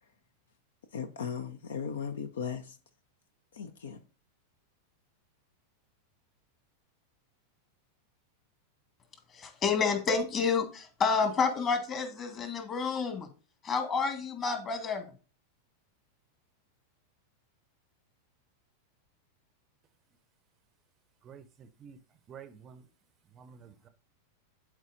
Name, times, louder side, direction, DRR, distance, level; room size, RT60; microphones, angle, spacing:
voice 1, 0.9-2.8 3.5-4.0, left 7 dB, 65° left, 0.7 m, -37 dB
voice 2, 9.3-13.3 13.6-15.1, left 5 dB, 30° left, 1.9 m, -29 dB
voice 3, 21.2-22.0 22.3-22.8 23.3-23.9, right 7 dB, 30° right, 0.6 m, -50 dB
12.0 x 4.6 x 2.6 m
figure-of-eight pair, 90°, 0 cm